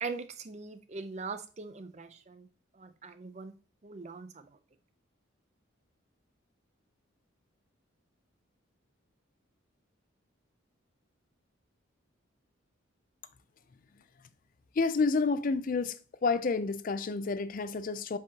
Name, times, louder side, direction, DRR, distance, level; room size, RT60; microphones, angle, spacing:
voice 1, 0.0-2.5 2.7-3.5 3.8-4.5, right 4 dB, 35° right, 0.5 m, -41 dB
voice 2, 14.8-18.2, left 4 dB, 40° left, 0.4 m, -29 dB
7.3 x 4.7 x 2.8 m
head